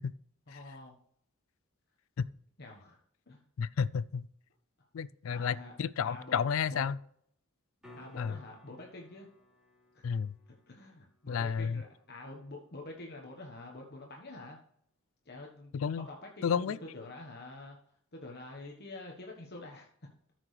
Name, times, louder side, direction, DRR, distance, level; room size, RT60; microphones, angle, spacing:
voice 1, 0.5-1.0 2.6-3.0 3.3-3.4 5.3-5.8 6.0-6.4 6.7-6.8 8.0-9.3 9.9-10.1 10.7-14.6 15.2-17.8 18.1-19.9, left 2 dB, 50° left, 1.2 m, -47 dB
voice 2, 3.6-4.3 4.9-7.0 8.2-8.3 10.0-10.3 11.3-11.8 15.7-16.1 16.4-16.8, left 6 dB, 65° left, 0.4 m, -31 dB
sound 1, 7.8-13.8 18.5-18.6, left 1 dB, ahead, 2.9 m, -61 dB
13.5 x 6.1 x 3.3 m
head